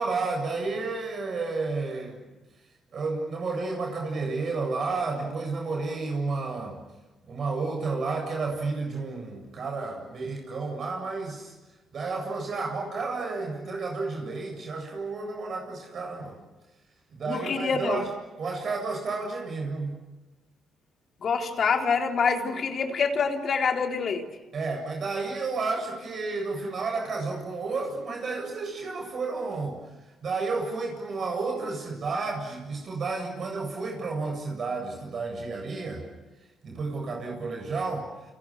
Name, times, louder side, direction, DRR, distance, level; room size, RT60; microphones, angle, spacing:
voice 1, 0.0-2.2 2.9-6.8 7.3-11.5 11.9-16.4 17.2-18.1 18.4-20.0 24.5-29.8 30.2-36.1 36.6-38.1, right 3 dB, 55° right, 1 dB, 7.9 m, -31 dB
voice 2, 17.3-18.1 21.2-24.3, left 5 dB, 55° left, 4 dB, 4.0 m, -26 dB
30.0 x 30.0 x 6.7 m, 1.1 s
cardioid pair, 90°, 0 cm